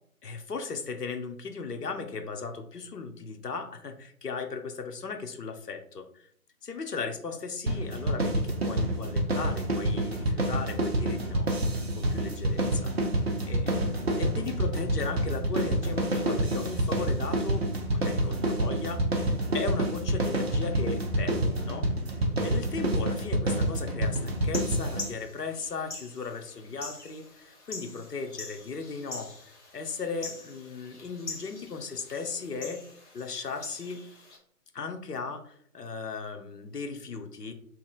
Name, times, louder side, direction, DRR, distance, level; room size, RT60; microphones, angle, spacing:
voice 1, 0.2-6.3 6.6-11.5 11.9-12.9 13.5-17.6 17.9-21.9 22.4-29.3 29.7-32.8 33.1-34.0 34.7-37.5, left 4 dB, 85° left, 6 dB, 0.7 m, -37 dB
sound 1, 7.7-25.1, right 1 dB, 45° right, 0.6 m, -28 dB
sound 2, 24.3-34.4, left 3 dB, 50° left, 1.1 m, -44 dB
2.8 x 2.5 x 3.8 m, 0.64 s
figure-of-eight pair, 145°, 46 cm